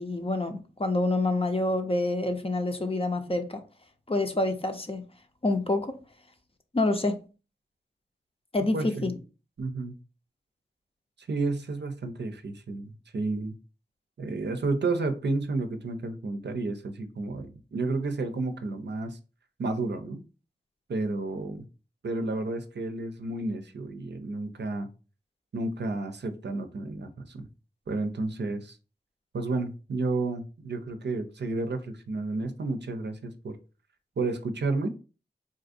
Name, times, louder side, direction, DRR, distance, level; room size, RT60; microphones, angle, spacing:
voice 1, 0.0-3.6 4.1-5.1 5.4-6.0 6.7-7.2 8.5-9.1, left 2 dB, 30° left, 0.6 m, -27 dB
voice 2, 8.7-9.1 9.6-10.0 11.2-13.5 14.2-19.2 19.6-20.2 20.9-21.7 22.0-24.9 25.5-27.5 27.9-28.8 29.3-33.6 34.2-34.9, right 3 dB, 70° right, 0.5 m, -31 dB
3.9 x 2.5 x 2.5 m
cardioid pair, 45°, 18 cm